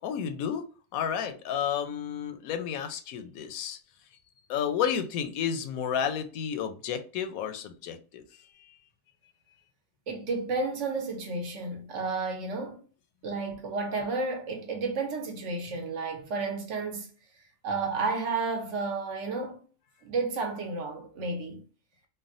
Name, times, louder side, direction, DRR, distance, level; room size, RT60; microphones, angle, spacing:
voice 1, 0.0-0.6 0.9-3.8 4.5-8.2, left 8 dB, 90° left, 1.0 m, -31 dB
voice 2, 10.1-12.8 13.2-17.1 17.6-19.6 20.0-21.6, right 3 dB, 65° right, 1.0 m, -32 dB
3.3 x 2.2 x 2.5 m
omnidirectional pair, 1.4 m